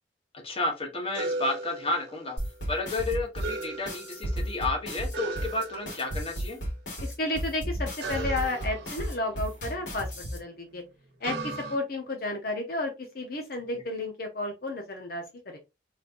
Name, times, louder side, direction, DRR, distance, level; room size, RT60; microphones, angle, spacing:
voice 1, 0.4-2.4 2.7-6.6, left 2 dB, 30° left, 3 dB, 1.2 m, -31 dB
sound 1, 1.1-2.6 3.4-4.6 5.1-6.4 8.0-10.1 11.2-11.8, right 2 dB, 65° right, 1.1 m, -37 dB
sound 2, 2.4-10.4, equal, 90° left, 2.8 m, -33 dB
voice 2, 7.0-10.8 11.2-15.6, left 2 dB, 55° left, 3 dB, 0.9 m, -32 dB
4.3 x 3.8 x 2.6 m, 0.24 s
head